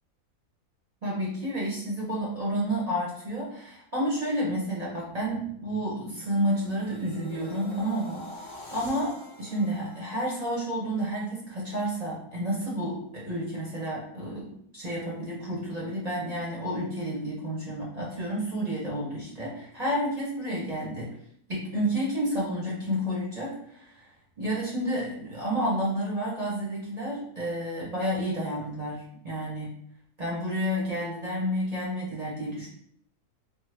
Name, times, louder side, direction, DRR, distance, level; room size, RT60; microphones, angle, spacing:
voice 1, 1.0-8.2 8.7-21.1 21.5-24.1 24.4-29.7 30.2-32.7, equal, 40° right, -6 dB, 0.7 m, -30 dB
sound 1, 5.0-11.1 11.6-11.8, left 1 dB, 35° left, 0.5 m, -47 dB
3.0 x 2.1 x 3.2 m, 0.67 s
omnidirectional pair, 1.4 m